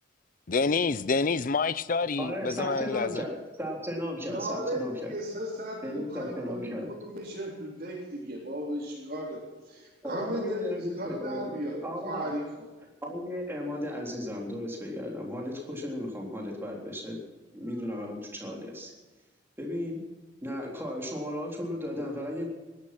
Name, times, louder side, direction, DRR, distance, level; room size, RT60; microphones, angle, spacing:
voice 1, 0.5-3.2, left 4 dB, 45° left, 0.5 m, -27 dB
voice 2, 2.2-5.1 5.8-6.9 10.0-11.5 11.8-12.3 13.0-17.2 17.5-18.9 19.6-20.0 20.4-22.5, left 1 dB, 10° right, 3.7 m, -35 dB
voice 3, 4.3-4.8 5.1-9.4 9.7-12.7, equal, 45° right, 3.7 m, -36 dB
19.0 x 12.0 x 6.1 m
head